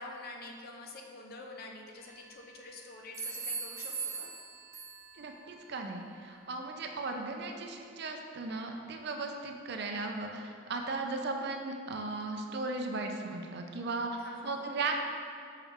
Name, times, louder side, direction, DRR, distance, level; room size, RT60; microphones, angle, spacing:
voice 1, 0.0-4.3 14.2-14.6, left 2 dB, 45° left, 2 dB, 0.6 m, -47 dB
sound 1, 1.9-2.6 3.1-5.3, right 4 dB, 15° right, 0.9 m, -40 dB
voice 2, 5.1-14.1 14.4-15.0, right 3 dB, 55° right, 3 dB, 0.5 m, -36 dB
5.8 x 5.6 x 3.5 m, 2.3 s
head